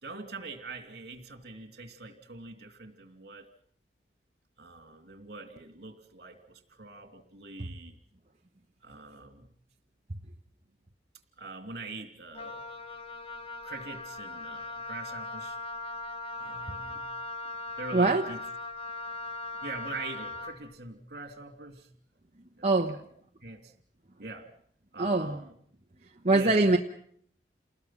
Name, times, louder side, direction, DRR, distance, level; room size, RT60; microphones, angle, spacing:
voice 1, 0.0-3.5 4.6-8.0 8.8-9.5 11.4-12.6 13.6-15.6 16.3-17.1 17.8-18.4 19.6-21.9 22.6-23.0 23.4-23.7 24.2-24.5 24.9-25.6 26.3-26.7, right 3 dB, 60° right, 6 dB, 3.1 m, -43 dB
Wind instrument woodwind instrument, 12.3-20.6, left 2 dB, 35° left, 1.4 m, -39 dB
voice 2, 17.9-18.2 22.6-22.9 25.0-25.4 26.2-26.8, right 2 dB, 40° right, 2 dB, 1.1 m, -23 dB
29.5 x 20.5 x 6.0 m, 0.64 s
head